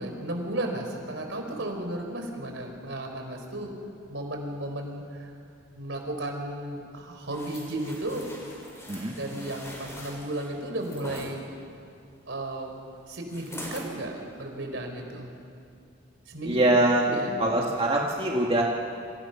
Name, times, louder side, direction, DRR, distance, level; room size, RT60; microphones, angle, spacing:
voice 1, 0.0-3.7 4.1-5.3 5.7-8.3 9.2-11.4 12.3-12.7 13.1-15.3 16.3-16.6 17.0-17.3, right 1 dB, 65° right, 3 dB, 4.3 m, -34 dB
sound 1, 7.3-11.3 13.3-13.9 14.4-14.6, left 1 dB, 15° left, 5.0 m, -43 dB
voice 2, 16.4-17.1 17.4-18.6, right 1 dB, 30° right, -2 dB, 1.9 m, -23 dB
28.5 x 25.0 x 5.9 m, 2.4 s
head